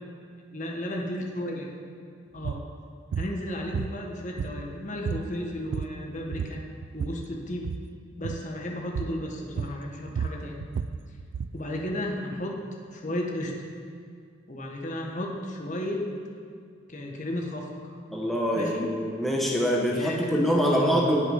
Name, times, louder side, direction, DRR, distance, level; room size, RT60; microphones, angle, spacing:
voice 1, 0.5-1.7 2.3-2.6 3.2-6.6 6.9-7.7 8.2-10.6 11.5-12.6 12.9-13.6 14.5-16.0 16.9-17.7 18.5-18.9 19.9-21.1, left 1 dB, 40° left, 0 dB, 1.5 m, -33 dB
sound 1, 2.4-2.7 3.1-3.3 3.7-4.7 5.0-5.3 5.6-6.0 6.3-7.2 7.6-7.9 8.2-8.5 8.9-9.2 9.6-11.6, right 6 dB, 75° right, 0.3 m, -32 dB
voice 2, 18.1-21.3, equal, ahead, -2 dB, 1.0 m, -25 dB
18.0 x 6.5 x 5.5 m, 2.2 s
head